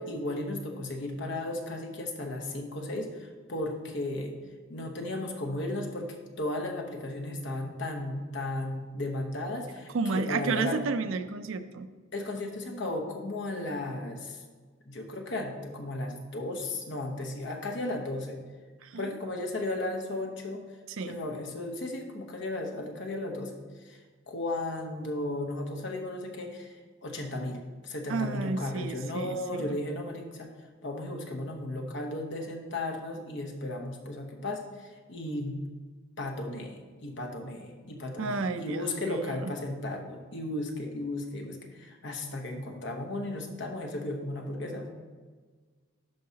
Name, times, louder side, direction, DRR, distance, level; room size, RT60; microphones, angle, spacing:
voice 1, 0.0-4.3 4.7-10.8 12.1-14.4 14.9-18.4 19.0-20.6 21.1-23.5 23.8-24.0 24.3-26.7 27.0-30.5 30.8-35.6 36.2-44.9, left 2 dB, 55° left, 3 dB, 1.0 m, -35 dB
voice 2, 9.9-11.9 18.8-19.1 20.9-21.2 28.1-29.8 38.2-39.5, right 4 dB, 65° right, 9 dB, 0.5 m, -32 dB
12.0 x 4.7 x 2.8 m, 1.4 s
head